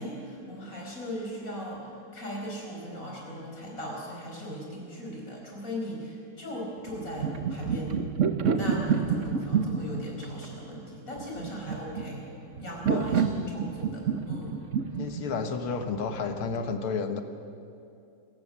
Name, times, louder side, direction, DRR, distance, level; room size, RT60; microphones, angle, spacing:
voice 1, 0.0-8.0 8.5-12.2 12.6-14.6, equal, 40° left, -2 dB, 5.6 m, -38 dB
sound 1, 6.9-16.6, right 6 dB, 45° right, 1.1 m, -29 dB
voice 2, 15.0-17.2, left 5 dB, 80° left, 7 dB, 2.2 m, -31 dB
26.5 x 15.5 x 7.3 m, 2.7 s
omnidirectional pair, 2.3 m